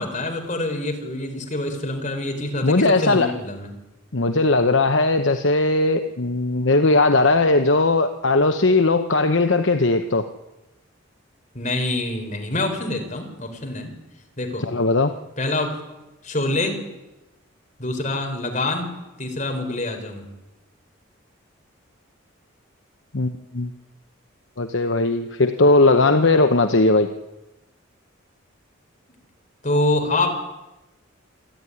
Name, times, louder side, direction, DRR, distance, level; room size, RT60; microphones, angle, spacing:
voice 1, 0.0-3.7 11.5-13.9 14.4-14.7 15.4-15.8 16.2-16.8 17.8-18.9 19.2-20.2 29.6-30.3, left 2 dB, 35° left, 4 dB, 4.3 m, -25 dB
voice 2, 2.6-3.3 4.1-10.3 14.7-15.1 23.1-23.7 24.6-27.1, left 2 dB, 60° left, 7 dB, 1.0 m, -18 dB
27.0 x 11.0 x 9.9 m, 1.0 s
head